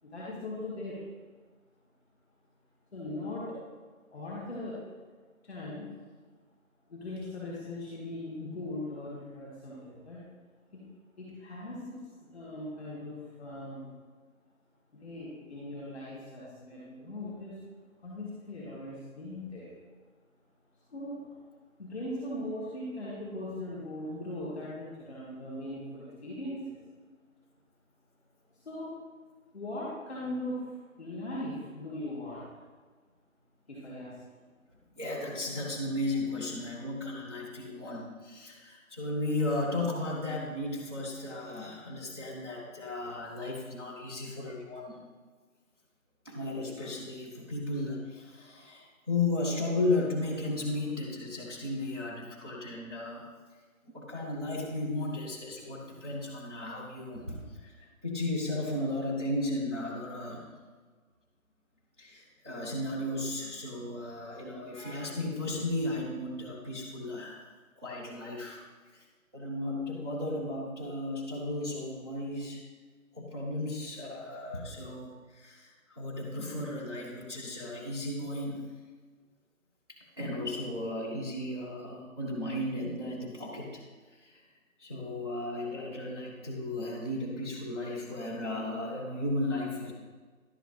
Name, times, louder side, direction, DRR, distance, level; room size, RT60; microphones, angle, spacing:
voice 1, 0.0-1.0 2.9-3.6 4.1-4.8 5.4-5.9 6.9-10.2 10.7-10.9 11.2-13.9 15.0-17.6 18.0-19.7 20.9-21.4 21.8-26.7 28.5-28.9 29.5-32.5 33.7-34.2, left 1 dB, 5° left, -14 dB, 1.0 m, -39 dB
voice 2, 35.0-45.0 46.2-53.3 53.8-60.5 62.0-68.6 68.9-69.0 69.3-72.6 73.1-78.7 80.2-83.8 84.1-84.4 84.8-89.9, left 2 dB, 20° right, -9 dB, 0.8 m, -35 dB
11.0 x 8.1 x 3.3 m, 1.4 s
figure-of-eight pair, 170°, 42 cm